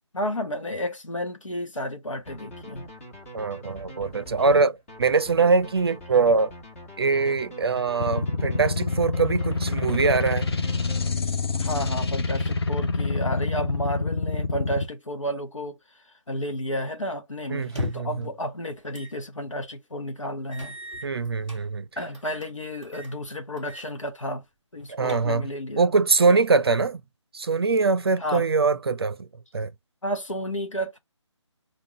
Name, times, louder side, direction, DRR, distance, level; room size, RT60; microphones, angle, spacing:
voice 1, 0.1-2.9 11.6-20.8 22.0-24.4 24.7-25.9 28.2-28.4 30.0-31.0, equal, 90° left, 1.1 m, -32 dB
sound 1, 2.3-11.6, right 1 dB, 30° left, 1.4 m, -43 dB
voice 2, 3.3-6.5 7.0-10.5 17.5-18.1 21.0-21.8 24.9-25.4 25.8-27.0 27.3-29.3 29.5-29.7, right 4 dB, 55° right, 0.5 m, -23 dB
sound 2, 8.0-14.8, left 3 dB, 55° left, 0.8 m, -27 dB
sound 3, 17.6-18.2 18.9-19.2 19.6-19.7 20.5-21.6 22.1-22.5 22.8-23.1 23.6-23.9 24.2-24.3 24.8-25.6, left 2 dB, 5° left, 0.3 m, -37 dB
3.7 x 2.3 x 3.0 m
figure-of-eight pair, 155°, 16 cm